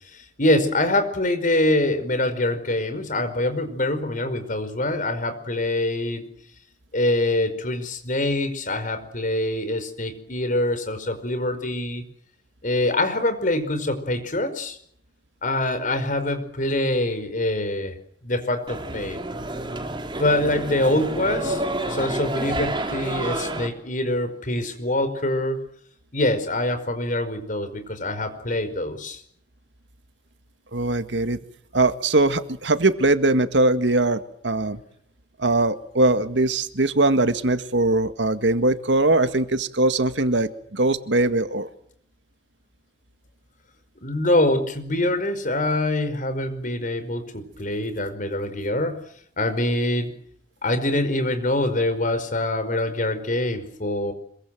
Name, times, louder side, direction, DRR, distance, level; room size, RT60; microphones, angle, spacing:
voice 1, 0.1-6.2 6.9-12.0 12.6-14.8 15.4-18.0 18.2-19.2 20.2-21.6 21.9-25.6 26.1-29.2 44.0-49.0 49.4-50.1 50.6-54.1, left 1 dB, 45° left, 10 dB, 5.1 m, -24 dB
sound 1, 18.7-23.7, right 2 dB, 25° right, 3.8 m, -29 dB
voice 2, 30.7-31.4 31.7-34.8 35.4-41.7, right 2 dB, 85° right, 10 dB, 1.9 m, -21 dB
26.0 x 23.5 x 7.7 m, 0.65 s
head